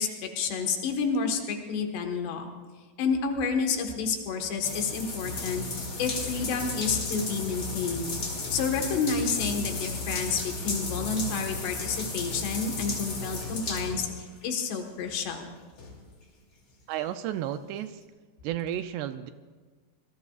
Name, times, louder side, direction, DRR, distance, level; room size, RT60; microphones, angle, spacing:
voice 1, 0.0-2.5 3.0-5.7 6.0-8.1 8.5-15.5, left 5 dB, 75° left, 4 dB, 3.6 m, -30 dB
sound 1, 4.6-14.5 15.0-15.1 15.8-15.9, left 3 dB, 35° left, 2.8 m, -34 dB
voice 2, 16.9-18.0 18.4-19.3, right 11 dB, 85° right, 10 dB, 2.5 m, -32 dB
26.0 x 19.5 x 2.4 m, 1.4 s
omnidirectional pair, 5.1 m